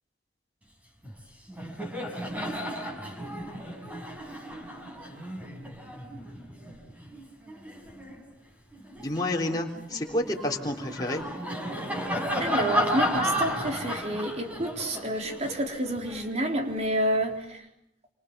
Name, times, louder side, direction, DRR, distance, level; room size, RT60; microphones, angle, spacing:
Laughter, 1.0-1.2 1.5-8.2 8.7-16.9, equal, 10° right, 5.5 m, -33 dB
voice 1, 9.0-11.2, left 1 dB, 20° left, -1 dB, 3.4 m, -29 dB
voice 2, 12.4-17.6, right 1 dB, 40° right, 3 dB, 3.8 m, -29 dB
28.0 x 26.5 x 7.3 m, 0.76 s
head